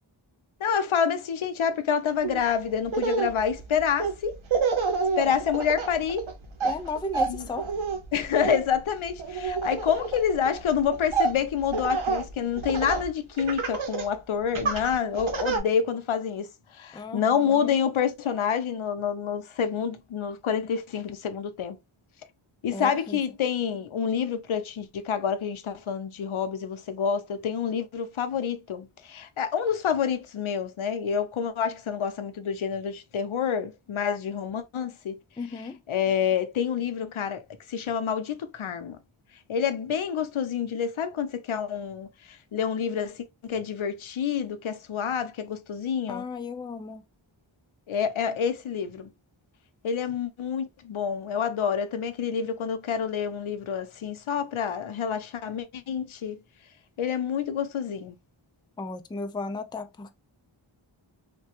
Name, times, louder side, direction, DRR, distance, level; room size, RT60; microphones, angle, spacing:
voice 1, 0.6-4.4 5.2-6.3 7.3-7.4 8.1-16.5 16.7-21.8 22.6-35.2 35.9-37.4 37.7-39.0 39.5-42.1 42.5-46.2 47.9-49.1 49.8-56.4 57.0-58.1, left 7 dB, 80° left, 0.6 m, -28 dB
Laughter, 2.2-2.4 2.9-13.1 13.4-14.1 14.5-15.6, right 4 dB, 75° right, 0.8 m, -29 dB
voice 2, 6.6-7.7 16.9-17.8 22.7-23.2 35.4-35.8 46.1-47.0 58.8-60.1, left 3 dB, 10° left, 0.3 m, -35 dB
3.2 x 2.2 x 2.7 m
wide cardioid pair, 60°, 48 cm